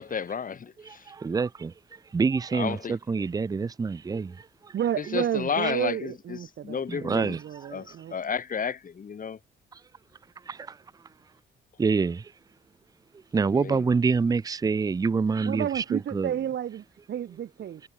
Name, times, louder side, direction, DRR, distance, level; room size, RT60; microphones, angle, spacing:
voice 1, 0.0-1.1 2.5-3.0 5.0-6.4 6.6-7.4 7.7-9.4 13.6-13.9, left 6 dB, 45° left, 3.9 m, -32 dB
voice 2, 0.8-1.7 2.1-4.7 6.9-7.4 10.5-10.8 11.8-12.3 13.3-16.3, right 5 dB, 20° right, 0.5 m, -26 dB
voice 3, 4.7-8.2 15.4-17.8, right 10 dB, 60° right, 2.3 m, -31 dB
cardioid pair, 90°, 20 cm